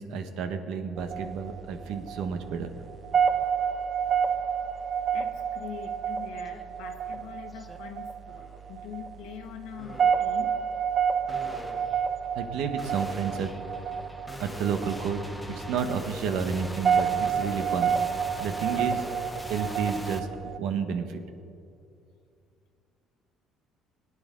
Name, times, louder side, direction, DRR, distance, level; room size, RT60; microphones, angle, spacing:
voice 1, 0.0-2.7 12.3-13.5 14.4-15.2 15.5-17.9 18.4-19.0 19.5-21.2, right 6 dB, 70° right, 7 dB, 1.1 m, -31 dB
sound 1, 1.0-20.6, right 7 dB, 30° right, 0.4 m, -29 dB
voice 2, 5.1-10.5, left 9 dB, 85° left, 4 dB, 1.1 m, -43 dB
sound 2, 6.5-6.6 7.0-7.8 8.3-8.7 9.8-10.4 11.3-20.2, left 1 dB, 5° left, 0.7 m, -41 dB
21.0 x 9.7 x 3.7 m, 2.5 s
cardioid pair, 170°, 0 cm